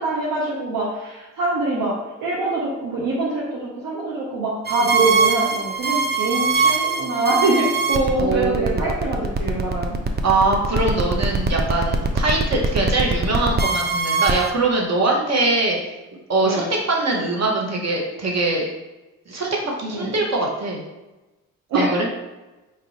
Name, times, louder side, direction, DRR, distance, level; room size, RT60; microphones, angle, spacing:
voice 1, 0.0-1.9 2.2-10.0 16.4-16.7 19.9-20.1 21.7-21.9, right 2 dB, 65° right, -4 dB, 0.9 m, -24 dB
sound 1, 4.7-14.5, right 5 dB, 30° right, 0.5 m, -22 dB
voice 2, 8.2-8.8 10.2-15.8 16.3-18.6 19.3-20.8 21.7-22.1, right 2 dB, 45° right, -1 dB, 1.2 m, -22 dB
4.5 x 2.5 x 3.1 m, 1.1 s
supercardioid pair, 55°, 37 cm